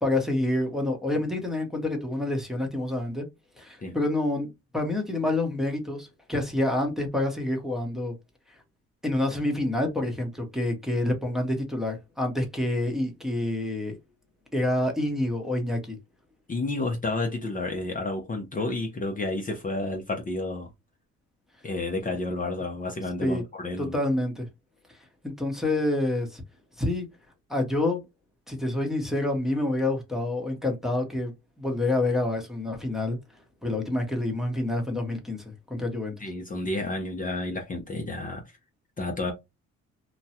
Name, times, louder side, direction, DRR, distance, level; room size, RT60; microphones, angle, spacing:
voice 1, 0.0-3.3 3.6-8.1 9.0-14.0 14.5-16.0 23.2-23.4 23.8-24.5 25.2-26.4 26.8-27.1 27.5-28.1 28.5-31.3 31.6-33.2 33.6-36.1, left 1 dB, ahead, 1.0 m, -27 dB
voice 2, 16.5-20.7 21.6-24.0 36.2-38.4 39.0-39.3, left 2 dB, 25° left, 0.7 m, -30 dB
3.0 x 2.2 x 2.8 m
cardioid pair, 90°, 30 cm